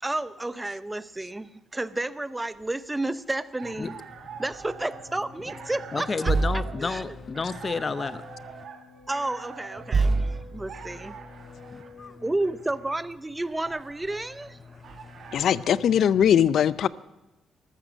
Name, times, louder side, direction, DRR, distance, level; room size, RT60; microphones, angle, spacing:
voice 1, 0.0-3.9 4.4-6.3 6.8-7.1 9.1-11.2 12.2-14.6, right 2 dB, 15° right, 0.7 m, -31 dB
sound 1, 2.5-2.7 4.5-4.7 6.2-7.9 9.0-9.1 9.9-11.6 13.2-13.3 13.6-14.1 14.9-15.4 16.1-16.3, right 3 dB, 50° right, 1.8 m, -29 dB
sound 2, 3.4-15.8, right 7 dB, 65° right, 2.0 m, -45 dB
voice 2, 3.8-4.4 5.9-8.6 9.8-12.3 14.6-16.0, left 4 dB, 35° left, 0.7 m, -34 dB
sound 3, 4.7-12.4, left 3 dB, 85° left, 2.8 m, -50 dB
voice 3, 15.3-16.9, left 9 dB, 65° left, 0.5 m, -20 dB
14.0 x 13.0 x 6.3 m
cardioid pair, 90°, 0 cm